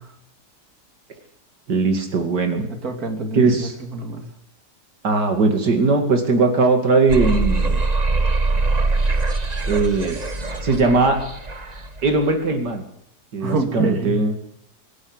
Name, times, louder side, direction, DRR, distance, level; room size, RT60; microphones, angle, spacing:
voice 1, 1.7-2.7 3.3-3.7 5.0-7.8 9.7-10.2 10.6-11.2 12.0-12.8 13.3-14.3, right 3 dB, 85° right, 4 dB, 2.9 m, -19 dB
voice 2, 2.8-4.2 13.4-14.1, right 3 dB, 60° right, 5 dB, 3.2 m, -26 dB
sound 1, 7.1-12.2, right 3 dB, 25° right, 1.3 m, -22 dB
24.5 x 11.5 x 9.7 m, 0.76 s
omnidirectional pair, 1.7 m